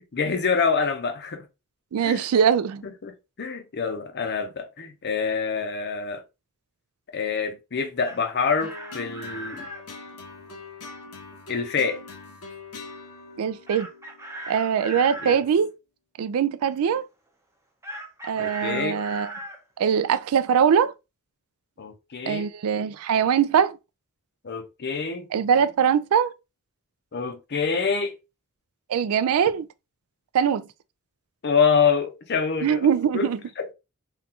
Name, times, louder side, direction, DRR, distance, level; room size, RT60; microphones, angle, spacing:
voice 1, 0.0-1.4 2.0-2.2 3.0-6.2 7.1-9.7 11.5-12.0 15.2-15.4 18.4-19.0 21.8-22.5 24.4-25.3 27.1-28.1 31.4-33.3 33.6-33.7, left 5 dB, 50° left, 0.7 m, -26 dB
voice 2, 1.9-2.8 13.4-13.9 14.5-15.7 16.2-17.0 18.2-19.3 19.8-20.9 22.3-23.8 25.3-26.3 28.9-29.7 30.3-30.7 32.6-33.4, right 7 dB, 70° right, 0.3 m, -22 dB
Chicken rooster, 7.8-9.8 13.7-15.4 17.8-19.6, equal, 15° right, 0.7 m, -38 dB
sound 1, 8.6-15.1, left 3 dB, 85° left, 0.9 m, -43 dB
3.7 x 2.3 x 2.8 m
head